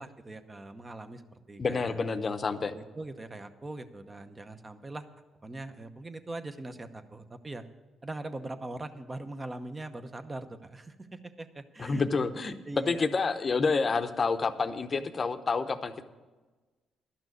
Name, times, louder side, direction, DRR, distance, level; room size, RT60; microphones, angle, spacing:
voice 1, 0.0-2.0 2.7-5.1 5.4-7.6 8.0-12.0 12.4-13.1, right 2 dB, 25° right, 9 dB, 0.8 m, -41 dB
voice 2, 1.6-2.7 11.8-16.0, left 4 dB, 35° left, 10 dB, 0.7 m, -29 dB
11.5 x 6.1 x 9.2 m, 1.3 s
cardioid pair, 90°, 0 cm